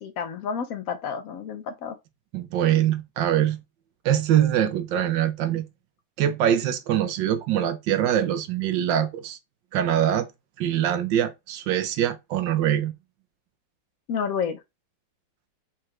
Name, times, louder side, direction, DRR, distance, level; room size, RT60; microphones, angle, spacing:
voice 1, 0.0-2.0 14.1-14.6, left 6 dB, 75° left, 0.8 m, -30 dB
voice 2, 2.3-3.6 4.0-5.6 6.2-9.4 9.7-10.3 10.6-12.9, right 10 dB, 75° right, 1.3 m, -23 dB
4.3 x 2.5 x 4.5 m
omnidirectional pair, 2.1 m